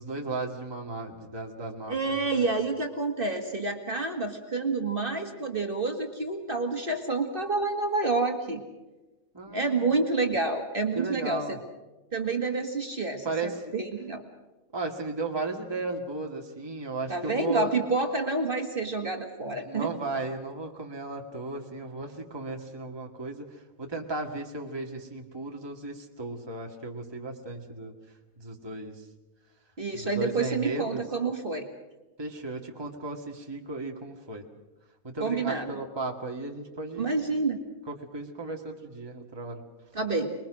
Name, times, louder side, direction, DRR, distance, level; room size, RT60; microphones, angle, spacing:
voice 1, 0.0-2.4 9.3-9.9 11.0-11.6 13.2-13.7 14.7-17.7 19.5-27.9 28.4-29.0 29.9-31.0 32.2-34.4 35.0-37.1 37.9-39.6, right 3 dB, 15° right, 2 dB, 1.9 m, -35 dB
voice 2, 1.9-8.6 9.5-11.6 12.1-14.2 17.1-19.9 29.8-31.7 35.2-35.8 37.0-37.6 39.9-40.4, right 3 dB, 35° right, 4 dB, 2.1 m, -28 dB
25.5 x 22.0 x 6.3 m, 1.1 s
omnidirectional pair, 1.6 m